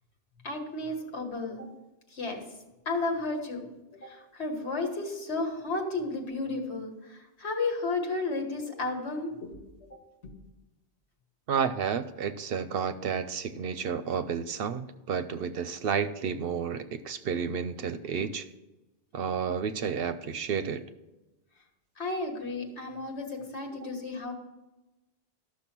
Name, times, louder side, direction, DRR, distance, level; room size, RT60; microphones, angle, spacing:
voice 1, 0.4-1.7 2.1-2.4 2.9-3.7 3.9-9.5 9.8-10.0 22.0-24.3, left 3 dB, 75° left, 3 dB, 1.8 m, -33 dB
voice 2, 11.5-18.5 19.1-20.8, right 7 dB, 65° right, 12 dB, 0.7 m, -31 dB
12.5 x 6.3 x 5.9 m, 1.0 s
omnidirectional pair, 1.1 m